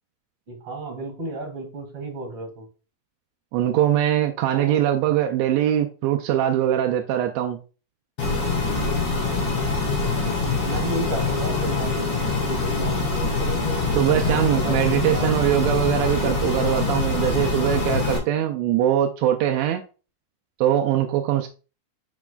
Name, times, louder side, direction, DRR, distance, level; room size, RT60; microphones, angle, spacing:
voice 1, 0.5-2.7 4.5-4.8 10.6-15.3, right 2 dB, 50° right, 2.8 m, -33 dB
voice 2, 3.5-7.6 13.9-19.8 20.6-21.5, right 11 dB, 80° right, 1.6 m, -22 dB
sound 1, 8.2-18.2, left 3 dB, 65° left, 4.4 m, -24 dB
7.1 x 6.0 x 2.3 m
omnidirectional pair, 3.5 m